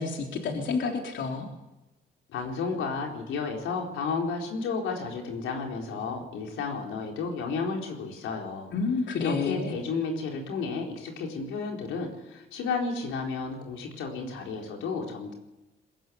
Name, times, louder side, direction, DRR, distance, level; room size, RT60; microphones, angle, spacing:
voice 1, 0.0-1.5 8.7-9.8, left 4 dB, 70° left, 1 dB, 3.7 m, -29 dB
voice 2, 2.3-8.7 9.2-15.3, left 4 dB, 90° left, 1 dB, 4.3 m, -32 dB
22.0 x 15.5 x 9.6 m, 1.0 s
cardioid pair, 90°, 20 cm